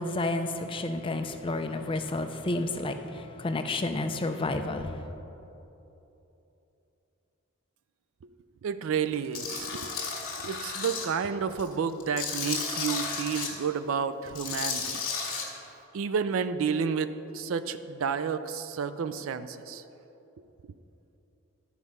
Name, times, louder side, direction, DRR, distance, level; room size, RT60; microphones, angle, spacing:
voice 1, 0.0-4.9, left 2 dB, 25° left, 7 dB, 0.4 m, -31 dB
voice 2, 8.6-9.9 10.4-15.0 15.9-19.8, right 6 dB, 60° right, 12 dB, 0.4 m, -31 dB
Tools, 9.3-11.1 11.5-13.5 14.3-15.4, left 5 dB, 45° left, 1.6 m, -33 dB
12.0 x 4.8 x 5.4 m, 3.0 s
head